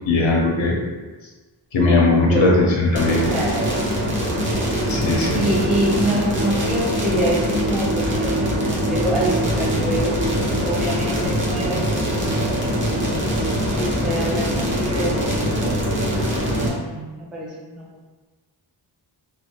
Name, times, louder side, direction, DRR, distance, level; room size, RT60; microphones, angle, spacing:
voice 1, 0.1-0.8 1.7-3.2 4.9-5.4, left 2 dB, 75° left, -1 dB, 0.7 m, -18 dB
voice 2, 2.3-2.7 3.1-4.1 5.3-11.8 12.1-12.9 13.8-16.1 16.6-17.9, equal, ahead, -5 dB, 0.4 m, -26 dB
sound 1, 2.9-16.7, equal, 25° right, 0.9 m, -22 dB
3.2 x 2.0 x 3.0 m, 1.3 s
wide cardioid pair, 90°, 47 cm